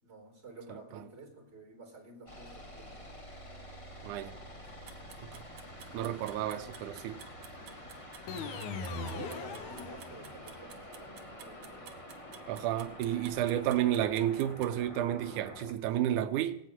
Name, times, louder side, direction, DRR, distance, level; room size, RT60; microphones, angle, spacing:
voice 1, 0.0-3.2 7.6-7.9 8.5-12.0 13.3-13.6, right 2 dB, 20° right, 4.5 m, -51 dB
sound 1, 2.3-15.7, equal, 20° left, 0.9 m, -48 dB
voice 2, 4.0-4.4 5.3-5.4 5.9-7.2 12.5-16.6, right 12 dB, 85° right, 2.2 m, -31 dB
sound 2, 4.7-14.7, right 9 dB, 65° right, 2.3 m, -52 dB
sound 3, 8.3-10.6, left 4 dB, 85° left, 2.7 m, -40 dB
17.5 x 8.1 x 9.2 m
omnidirectional pair, 3.5 m